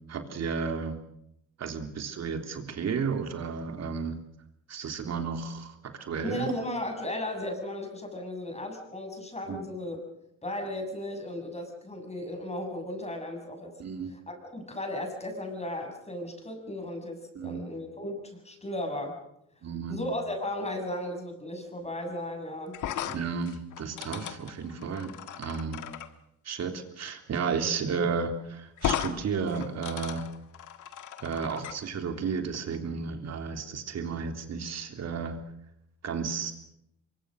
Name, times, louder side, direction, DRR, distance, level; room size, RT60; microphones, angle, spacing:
voice 1, 0.1-1.0 1.6-4.2 4.7-5.7 6.0-6.5 9.5-9.6 13.8-14.1 17.3-17.6 19.6-20.0 23.0-25.8 26.4-30.3 31.2-35.4 36.0-36.5, right 5 dB, 60° right, 6 dB, 3.4 m, -33 dB
voice 2, 6.2-10.0 10.4-13.7 14.1-19.2 19.9-22.8, left 1 dB, 20° left, 4 dB, 7.1 m, -35 dB
sound 1, 22.7-26.1 27.5-27.7 28.0-28.1 28.8-29.1 29.5-31.8, left 10 dB, 80° left, 1.7 m, -35 dB
24.0 x 23.5 x 6.4 m, 0.78 s
cardioid pair, 90°, 30 cm